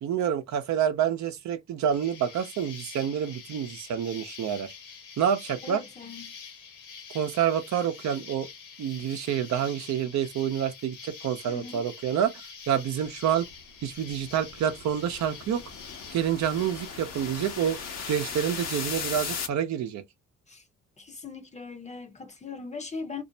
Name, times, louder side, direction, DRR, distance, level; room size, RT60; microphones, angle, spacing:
voice 1, 0.0-4.7 5.2-5.8 7.1-8.5 8.8-12.3 12.7-13.5 13.8-15.6 16.1-17.8 18.1-20.0, right 9 dB, 65° right, 0.7 m, -28 dB
Insect, 1.9-19.0, left 6 dB, 90° left, 1.1 m, -46 dB
voice 2, 5.6-6.3 11.5-11.8 20.5-20.6 21.0-23.2, left 4 dB, 25° left, 0.7 m, -40 dB
sound 1, 13.5-19.5, left 6 dB, 60° left, 0.9 m, -38 dB
2.6 x 2.0 x 2.6 m
cardioid pair, 90°, 30 cm